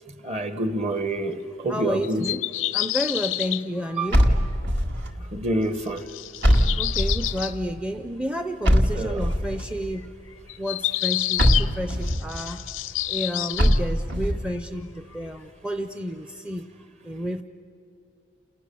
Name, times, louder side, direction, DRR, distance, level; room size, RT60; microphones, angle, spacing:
voice 1, 0.2-2.3 4.0-4.2 5.3-6.0 8.9-9.3, right 1 dB, 35° right, 10 dB, 1.3 m, -27 dB
voice 2, 1.7-2.4 2.7-4.3 6.5-10.1 10.6-12.6 13.1-16.7 17.0-17.4, equal, 5° right, 8 dB, 0.6 m, -31 dB
sound 1, 2.0-3.7 4.3-4.4 5.8-7.6 9.7-10.0 10.3-13.8, left 16 dB, 90° left, 0.6 m, -28 dB
sound 2, 4.1-5.1 6.4-7.4 8.6-9.6 11.4-12.2 13.6-14.4, equal, 60° right, 2.0 m, -21 dB
29.5 x 28.5 x 7.0 m, 2.6 s
head